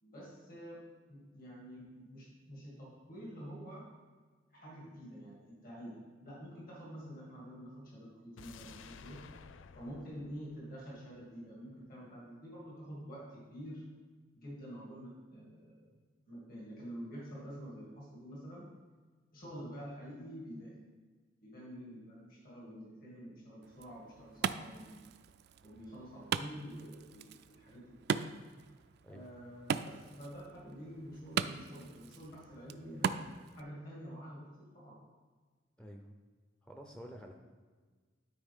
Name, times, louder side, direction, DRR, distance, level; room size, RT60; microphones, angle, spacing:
voice 1, 0.0-0.8 1.1-3.8 4.5-6.0 6.2-9.2 9.8-13.8 14.4-16.0 16.3-18.6 19.3-20.7 21.4-25.1 25.6-28.1 29.1-34.4 34.7-35.0, equal, 50° left, -6 dB, 2.4 m, -48 dB
sound 1, 8.4-11.5 11.8-11.9, left 5 dB, 85° left, 0.4 m, -55 dB
Wood, 23.6-33.6, right 7 dB, 60° right, 0.3 m, -40 dB
voice 2, 35.8-36.1 36.6-37.3, equal, 5° left, 2 dB, 0.5 m, -49 dB
12.5 x 4.7 x 3.6 m, 1.4 s
head